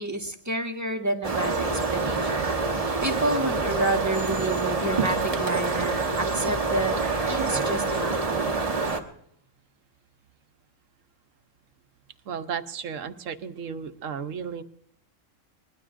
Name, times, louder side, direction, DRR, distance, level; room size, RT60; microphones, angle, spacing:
voice 1, 0.0-2.5 3.0-6.9 7.3-8.5, right 2 dB, 15° right, 1 dB, 1.6 m, -29 dB
sound 1, 1.2-9.0, right 3 dB, 30° right, 1.2 m, -26 dB
voice 2, 12.3-14.6, right 7 dB, 75° right, 9 dB, 1.2 m, -34 dB
22.0 x 20.5 x 2.6 m, 0.73 s
omnidirectional pair, 1.3 m